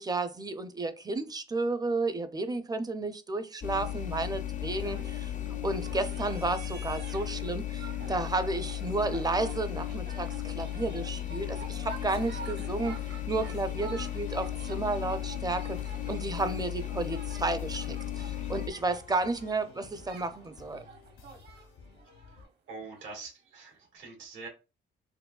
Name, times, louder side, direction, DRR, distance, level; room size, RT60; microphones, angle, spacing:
voice 1, 0.0-5.3 5.6-12.9 13.3-15.8 16.1-20.8, right 3 dB, 20° right, 0.5 m, -32 dB
sound 1, 3.6-18.7, left 12 dB, 40° left, 0.4 m, -35 dB
sound 2, 4.6-23.0 23.9-24.0, right 4 dB, 55° right, 1.1 m, -48 dB
sound 3, 13.3-22.4, left 5 dB, 85° left, 0.8 m, -53 dB
voice 2, 22.7-24.5, right 4 dB, 80° right, 1.9 m, -44 dB
4.5 x 2.2 x 2.3 m
cardioid pair, 90°, 20 cm